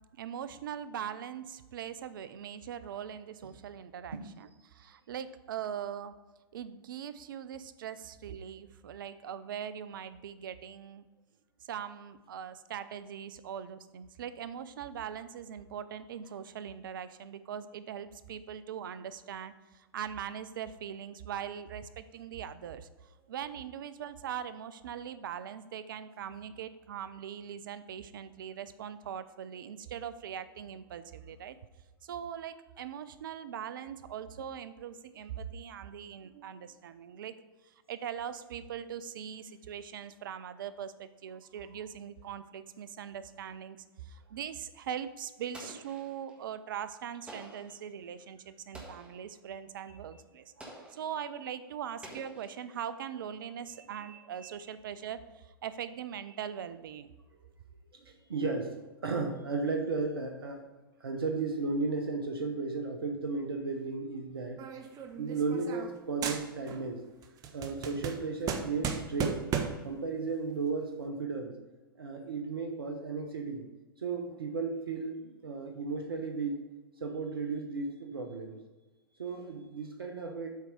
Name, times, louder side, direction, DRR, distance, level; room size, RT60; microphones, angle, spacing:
voice 1, 0.2-6.2 6.5-11.1 11.7-22.9 23.3-31.6 32.0-37.4 37.9-50.4 50.9-57.1, right 9 dB, 65° right, 14 dB, 0.5 m, -41 dB
Explosion, 45.5-46.4 47.3-47.8 48.7-49.3 50.6-51.1 52.0-52.9, right 1 dB, 10° right, 1.6 m, -49 dB
voice 2, 53.9-54.5 57.9-60.6 61.0-64.6 65.2-67.0 67.5-69.4 69.8-71.5 71.9-73.6 74.0-76.6 77.0-78.6 79.2-80.5, right 4 dB, 80° right, 3 dB, 0.9 m, -35 dB
sound 1, 64.6-66.0 66.2-66.9 67.2-69.9, right 7 dB, 30° right, 0.8 m, -35 dB
8.0 x 4.6 x 5.2 m, 1.2 s
figure-of-eight pair, 100°, 12 cm